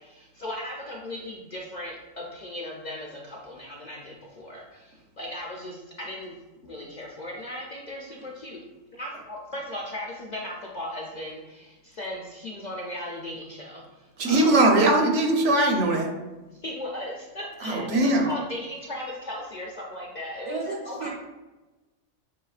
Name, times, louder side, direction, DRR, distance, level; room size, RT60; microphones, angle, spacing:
voice 1, 0.0-6.4 6.6-8.6 9.0-14.7 16.5-21.1, left 1 dB, 55° left, -3 dB, 0.5 m, -37 dB
voice 2, 14.2-16.1 17.6-18.3, right 2 dB, 70° right, 2 dB, 1.0 m, -20 dB
voice 3, 20.4-21.1, right 4 dB, 45° right, -3 dB, 0.4 m, -33 dB
5.7 x 2.9 x 2.4 m, 1.1 s
omnidirectional pair, 1.3 m